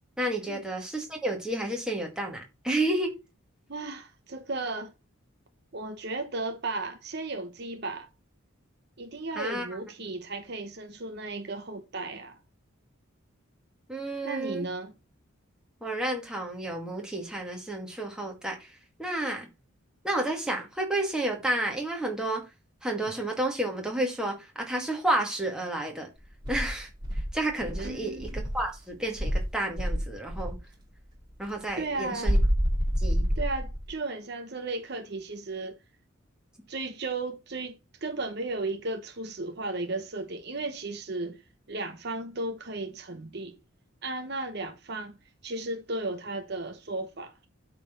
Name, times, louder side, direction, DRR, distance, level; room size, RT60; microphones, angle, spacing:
voice 1, 0.2-3.1 9.4-9.7 13.9-14.6 15.8-19.5 20.0-22.5 22.8-26.1 26.5-30.6 31.4-32.4 33.0-33.3, right 1 dB, 5° right, 2.0 m, -31 dB
voice 2, 3.7-4.9 5.7-8.1 9.0-12.4 14.2-14.9 27.8-28.3 31.8-32.4 33.4-35.8 36.7-43.6 44.0-45.2 45.4-47.5, right 2 dB, 50° right, 0.9 m, -35 dB
Insect, 26.4-28.7 29.2-30.6 32.2-33.9, equal, 20° right, 2.4 m, -27 dB
8.3 x 4.1 x 6.6 m
head